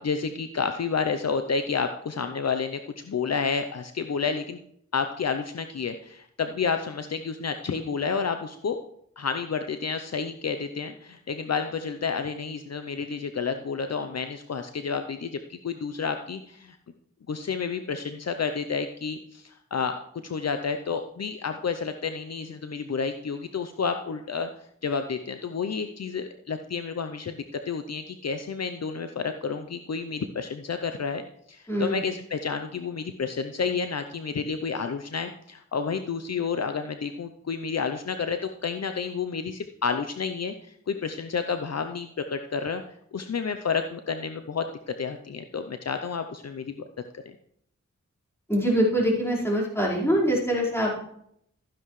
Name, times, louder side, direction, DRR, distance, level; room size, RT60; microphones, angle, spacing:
voice 1, 0.0-4.6 4.9-8.8 9.2-16.8 17.3-24.5 24.8-42.8 43.1-44.7 45.0-46.8 47.1-47.2, left 5 dB, 60° left, 8 dB, 0.7 m, -30 dB
voice 2, 48.5-51.0, equal, 10° left, -4 dB, 4.6 m, -24 dB
13.0 x 10.0 x 3.2 m, 0.71 s
cardioid pair, 55°, 30 cm